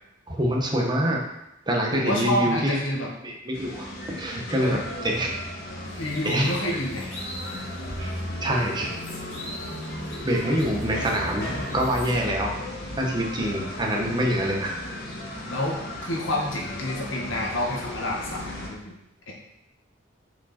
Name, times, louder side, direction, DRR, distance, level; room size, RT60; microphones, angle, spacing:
voice 1, 0.3-1.2 1.7-2.8 3.2-5.3 6.2-6.5 8.0-8.1 8.4-8.9 10.2-12.6 13.0-14.8, equal, 25° right, -1 dB, 1.1 m, -25 dB
voice 2, 1.9-3.1 4.6-5.1 6.0-7.1 14.0-14.4 15.5-18.9 19.3-19.4, left 1 dB, 85° left, -1 dB, 1.6 m, -29 dB
sound 1, 3.5-18.7, left 1 dB, 55° left, 1.4 m, -35 dB
sound 2, 5.8-7.7 8.1-8.2 8.6-12.2, equal, 35° left, 2.3 m, -42 dB
6.3 x 5.1 x 4.4 m, 0.87 s
head